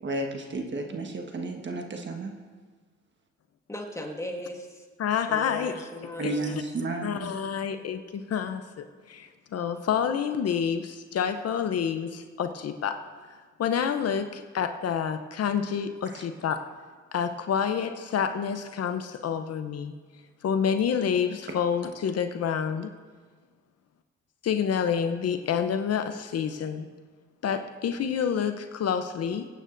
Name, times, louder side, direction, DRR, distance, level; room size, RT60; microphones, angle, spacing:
voice 1, 0.0-2.3 6.2-7.3 16.1-16.2 21.5-21.6, right 2 dB, 40° right, 3 dB, 1.3 m, -33 dB
voice 2, 3.7-4.9 5.3-6.6, left 1 dB, 10° left, 0 dB, 1.7 m, -38 dB
voice 3, 5.0-5.8 6.2-6.3 7.0-13.0 13.6-16.6 17.1-19.9 20.4-22.9 24.4-26.9 27.4-29.5, left 7 dB, 55° left, 8 dB, 0.7 m, -28 dB
23.0 x 9.0 x 2.6 m, 1.5 s
cardioid pair, 90°, 30 cm